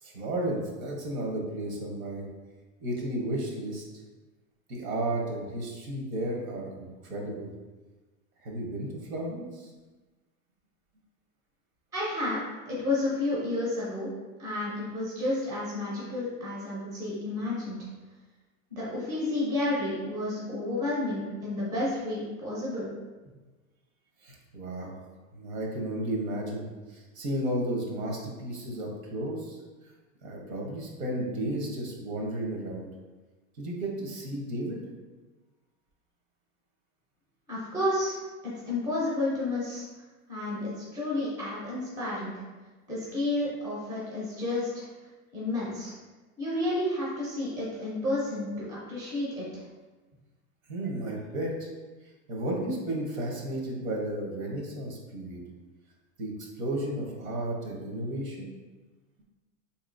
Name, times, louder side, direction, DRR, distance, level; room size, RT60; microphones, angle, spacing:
voice 1, 0.0-2.3 2.8-3.8 4.7-7.5 8.4-9.7 24.2-24.9 25.3-29.6 30.2-32.9 33.6-34.8 50.7-51.7 52.3-55.4 56.2-58.5, right 1 dB, 80° right, 0 dB, 1.1 m, -33 dB
voice 2, 11.9-14.1 14.4-17.8 18.7-22.9 37.5-38.2 38.4-39.8 40.3-42.3 42.9-44.8 45.3-45.9 46.4-49.5, left 2 dB, 10° right, -7 dB, 0.4 m, -31 dB
3.7 x 2.9 x 2.5 m, 1.2 s
supercardioid pair, 155°, 40 cm